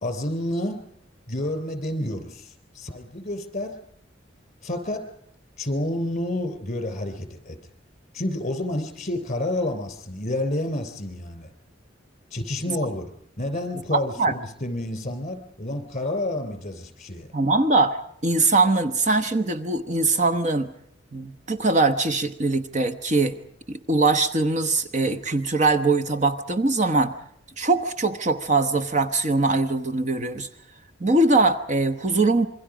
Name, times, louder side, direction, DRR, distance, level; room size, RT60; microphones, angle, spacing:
voice 1, 0.0-0.8 1.3-3.8 4.6-5.1 5.6-7.6 8.1-11.5 12.3-17.3, left 1 dB, 40° left, 8 dB, 3.4 m, -29 dB
voice 2, 13.9-14.3 17.3-20.7 21.1-23.4 23.7-27.1 27.6-30.5 31.0-32.5, right 3 dB, 40° right, 9 dB, 1.0 m, -22 dB
27.0 x 23.0 x 5.0 m, 0.69 s
head